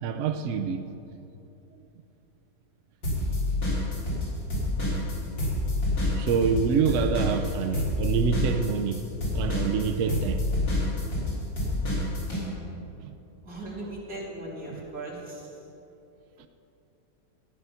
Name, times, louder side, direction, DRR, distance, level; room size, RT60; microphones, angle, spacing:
voice 1, 0.0-1.0 6.0-9.1 9.3-10.4 11.3-11.5 12.1-12.3 13.0-13.1 13.8-13.9 14.7-14.9 16.4-16.5, right 6 dB, 75° right, 0.7 m, -27 dB
sound 1, 3.0-4.3 4.5-12.4, left 2 dB, 75° left, 4.5 m, -27 dB
voice 2, 13.5-15.4, right 2 dB, 50° right, 2.9 m, -38 dB
14.0 x 9.6 x 5.7 m
omnidirectional pair, 2.0 m